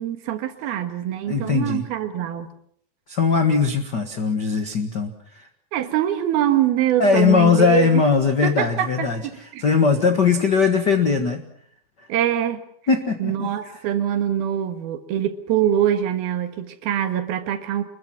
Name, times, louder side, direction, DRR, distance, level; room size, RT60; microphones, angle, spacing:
voice 1, 0.0-2.5 5.7-8.0 8.4-9.1 9.5-9.6 12.1-12.6 13.2-17.9, right 10 dB, 80° right, 8 dB, 3.4 m, -23 dB
voice 2, 1.2-1.8 3.1-5.5 7.0-11.4 12.9-13.5, left 5 dB, 60° left, 6 dB, 1.0 m, -20 dB
26.5 x 21.5 x 6.0 m, 0.66 s
omnidirectional pair, 4.4 m